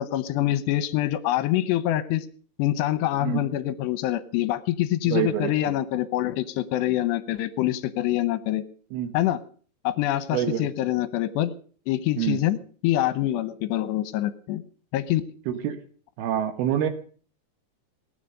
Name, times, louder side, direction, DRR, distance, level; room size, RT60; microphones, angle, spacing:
voice 1, 0.0-2.3 2.6-8.6 9.1-9.4 9.8-11.5 11.9-12.6 12.8-14.6 14.9-15.2, left 14 dB, 80° left, 14 dB, 2.9 m, -25 dB
voice 2, 5.1-5.5 8.9-9.1 10.3-10.7 12.2-12.4 15.5-15.8 16.2-16.9, right 11 dB, 70° right, 10 dB, 2.7 m, -26 dB
18.5 x 9.9 x 6.5 m, 0.44 s
omnidirectional pair, 5.1 m